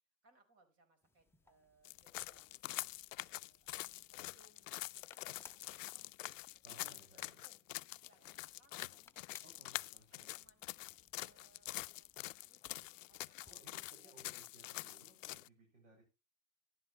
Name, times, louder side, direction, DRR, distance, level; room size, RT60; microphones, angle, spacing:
voice 1, 0.2-2.6 3.2-6.1 6.7-7.6 8.0-9.1 9.5-9.7 10.1-10.6 11.2-12.8 13.1-14.2, right 3 dB, 35° right, 8 dB, 4.6 m, -72 dB
sound 1, 1.0-13.7, left 4 dB, 5° left, 0.8 m, -67 dB
sound 2, 1.8-15.5, left 17 dB, 70° left, 0.5 m, -46 dB
voice 2, 6.6-7.4 9.4-10.3 13.4-16.0, right 2 dB, 85° right, -3 dB, 6.9 m, -63 dB
14.0 x 11.5 x 3.2 m, 0.29 s
hypercardioid pair, 110°, 39 cm